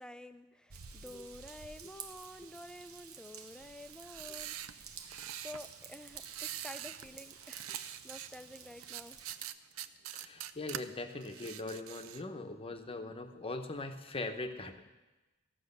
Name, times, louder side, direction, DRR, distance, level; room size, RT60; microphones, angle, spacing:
voice 1, 0.0-4.9 5.4-9.2, left 1 dB, 5° left, 10 dB, 0.4 m, -50 dB
Raindrop / Vehicle horn car horn honking / Trickle dribble, 0.7-9.5, right 7 dB, 85° right, 0.9 m, -51 dB
sound 1, 3.9-5.6 6.1-7.1 7.3-8.3 8.8-10.8 11.2-12.2, right 11 dB, 70° right, 0.5 m, -44 dB
voice 2, 10.1-14.9, left 2 dB, 25° left, 6 dB, 0.8 m, -41 dB
15.5 x 6.3 x 6.7 m, 1.1 s
head